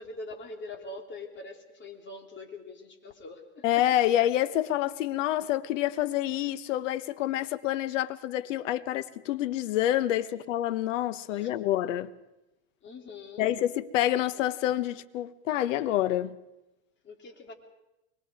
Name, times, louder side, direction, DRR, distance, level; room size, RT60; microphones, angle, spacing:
voice 1, 0.0-3.7 11.3-11.5 12.8-13.5 17.0-17.5, left 2 dB, 30° left, 3.6 m, -43 dB
voice 2, 3.6-12.1 13.4-16.4, left 13 dB, 70° left, 1.2 m, -27 dB
24.0 x 22.0 x 4.9 m
hypercardioid pair, 115°, 38 cm